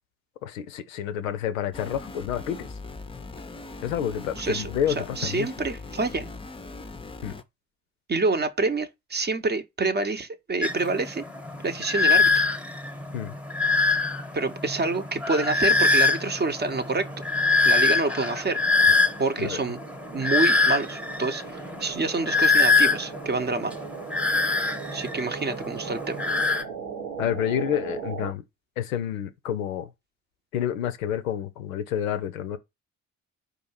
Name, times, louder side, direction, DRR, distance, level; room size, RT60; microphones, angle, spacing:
voice 1, 0.4-2.7 3.8-5.5 7.2-7.4 13.1-13.4 19.4-19.6 27.2-28.4 28.8-29.9 30.5-32.6, left 9 dB, 80° left, 0.5 m, -29 dB
sound 1, 1.7-7.4, left 3 dB, 15° left, 0.5 m, -40 dB
voice 2, 4.4-6.3 8.1-11.3 11.6-12.4 14.3-17.1 17.6-18.6 19.2-19.8 20.1-23.8 24.9-26.2, right 3 dB, 25° right, 0.7 m, -27 dB
sound 2, 10.6-26.6, left 3 dB, 5° right, 1.0 m, -24 dB
sound 3, 15.4-28.3, right 6 dB, 70° right, 0.9 m, -40 dB
4.7 x 2.6 x 4.3 m
figure-of-eight pair, 40°, 40 cm